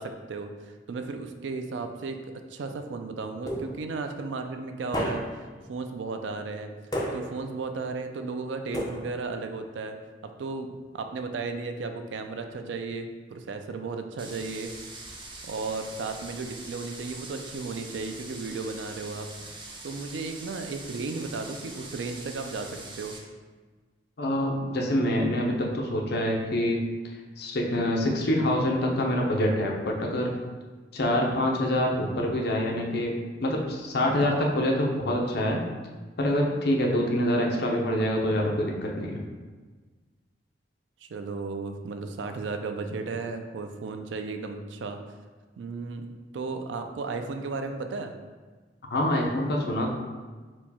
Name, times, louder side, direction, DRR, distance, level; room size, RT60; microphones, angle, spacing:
voice 1, 0.0-2.2 2.5-5.2 5.7-9.9 10.2-14.7 15.4-19.3 19.8-23.2 31.2-31.4 34.1-34.3 41.0-45.0 45.6-48.1, right 4 dB, 80° right, 6 dB, 0.4 m, -35 dB
sound 1, 3.5-4.0 4.9-5.5 6.9-7.5 8.7-9.4, equal, 20° left, 0.6 m, -32 dB
sound 2, 14.2-23.2, right 2 dB, 25° right, 0.5 m, -43 dB
voice 2, 24.2-26.8 27.4-30.3 30.9-35.6 36.2-39.2 48.9-49.9, left 1 dB, 65° left, 0 dB, 0.6 m, -26 dB
4.5 x 2.3 x 4.1 m, 1.4 s
head